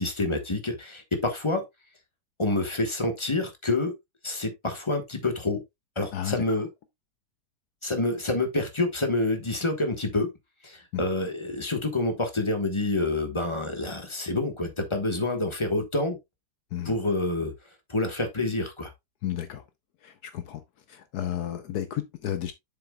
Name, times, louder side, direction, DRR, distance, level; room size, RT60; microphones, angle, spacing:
voice 1, 0.0-1.6 2.4-3.9 4.2-5.6 6.0-6.7 7.8-10.3 10.6-16.2 16.8-17.5 17.9-18.9, left 2 dB, 20° left, 1.1 m, -27 dB
voice 2, 19.2-19.6 20.0-20.6 21.1-22.5, left 11 dB, 70° left, 1.1 m, -32 dB
7.4 x 6.9 x 2.2 m
omnidirectional pair, 1.8 m